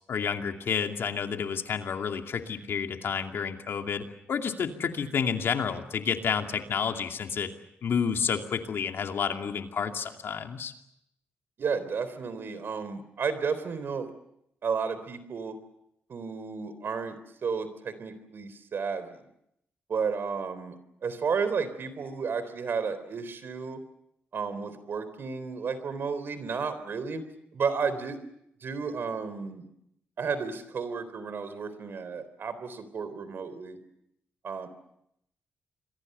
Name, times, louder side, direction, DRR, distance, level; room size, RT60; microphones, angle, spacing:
voice 1, 0.1-7.5 7.8-10.7, left 6 dB, 65° left, 5 dB, 2.5 m, -30 dB
voice 2, 11.6-14.1 14.6-15.6 16.1-19.2 19.9-23.8 24.3-27.2 27.5-28.2 28.6-29.7 30.2-33.8 34.4-34.7, right 5 dB, 60° right, 13 dB, 3.8 m, -32 dB
27.5 x 23.0 x 6.8 m, 0.78 s
cardioid pair, 75°, 4 cm